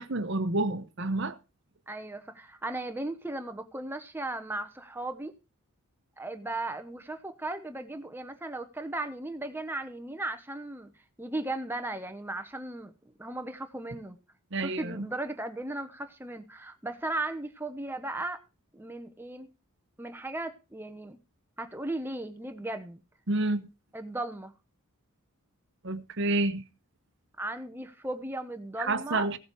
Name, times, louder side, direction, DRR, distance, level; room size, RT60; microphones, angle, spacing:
voice 1, 0.0-1.4 14.5-15.1 23.3-23.7 25.8-26.6 28.8-29.4, right 2 dB, 55° right, 1.0 m, -29 dB
voice 2, 1.9-5.3 6.2-10.9 11.2-14.2 14.6-18.4 18.7-19.5 20.0-21.2 21.6-23.0 23.9-24.5 27.4-29.4, right 2 dB, 10° right, 1.0 m, -36 dB
16.0 x 7.3 x 4.7 m
head